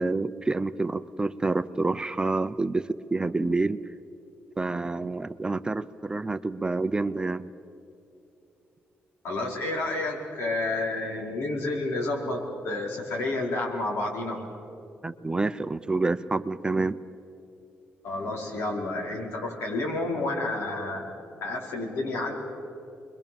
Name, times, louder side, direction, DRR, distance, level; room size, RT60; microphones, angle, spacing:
voice 1, 0.0-3.8 4.6-7.5 15.0-17.0, right 3 dB, 20° right, 12 dB, 0.7 m, -28 dB
voice 2, 9.2-14.4 18.0-21.0 21.4-22.3, left 2 dB, 80° left, -1 dB, 4.9 m, -30 dB
28.5 x 22.5 x 7.2 m, 2.7 s
cardioid pair, 75°, 4 cm